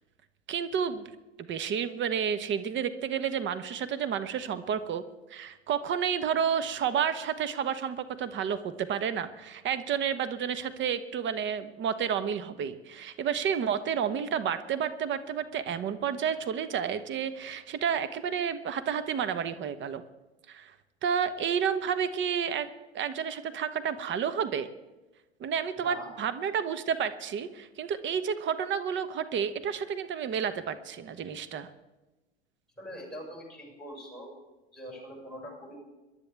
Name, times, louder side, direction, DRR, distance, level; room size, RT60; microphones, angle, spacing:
voice 1, 0.5-1.1 1.4-5.0 5.3-20.0 20.5-20.7 21.0-22.7 22.9-24.7 25.4-31.7, right 7 dB, 35° right, 12 dB, 1.2 m, -30 dB
voice 2, 32.8-34.3 34.7-35.8, equal, ahead, -1 dB, 6.3 m, -43 dB
27.0 x 12.0 x 3.5 m, 1.1 s
hypercardioid pair, 80°, 33 cm